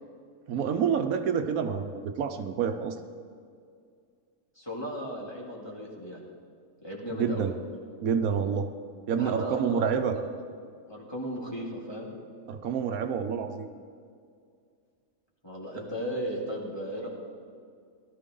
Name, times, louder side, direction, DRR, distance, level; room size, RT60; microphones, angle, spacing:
voice 1, 0.5-3.0 7.2-7.5 8.0-8.7 9.1-10.2 12.5-13.7 15.8-15.9, right 7 dB, 80° right, 7 dB, 1.2 m, -28 dB
voice 2, 4.6-6.2 6.8-7.5 9.2-10.3 10.9-12.1 15.4-17.1, equal, 20° left, -4 dB, 2.3 m, -36 dB
17.0 x 13.0 x 3.8 m, 2.2 s
omnidirectional pair, 1.5 m